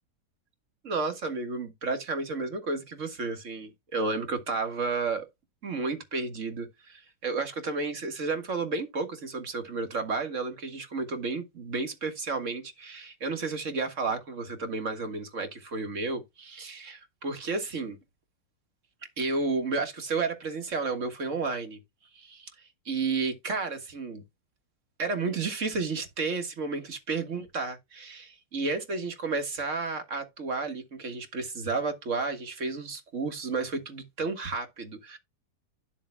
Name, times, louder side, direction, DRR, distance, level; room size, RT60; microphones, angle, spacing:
voice 1, 0.8-5.3 5.6-18.0 19.2-21.8 22.1-22.5 22.9-24.2 25.0-35.2, right 4 dB, 45° right, 1.9 m, -32 dB
12.0 x 7.1 x 2.2 m
omnidirectional pair, 1.8 m